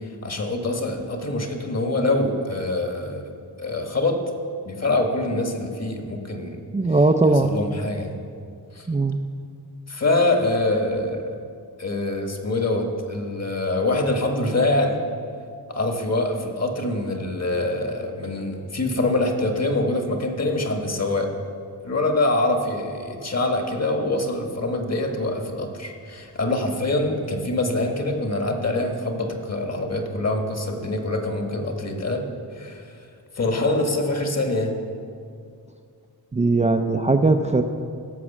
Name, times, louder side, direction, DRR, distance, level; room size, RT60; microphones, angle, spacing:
voice 1, 0.2-3.2 3.6-4.2 4.6-6.6 7.4-8.2 8.7-8.9 9.9-11.2 11.8-15.0 15.7-21.3 21.8-32.3 32.5-32.8 33.3-34.7, left 2 dB, 40° left, 3 dB, 1.6 m, -24 dB
voice 2, 6.7-7.5 8.9-9.2 36.3-37.6, right 3 dB, 20° right, 4 dB, 0.5 m, -19 dB
16.0 x 6.1 x 7.3 m, 2.4 s
wide cardioid pair, 115°, 40 cm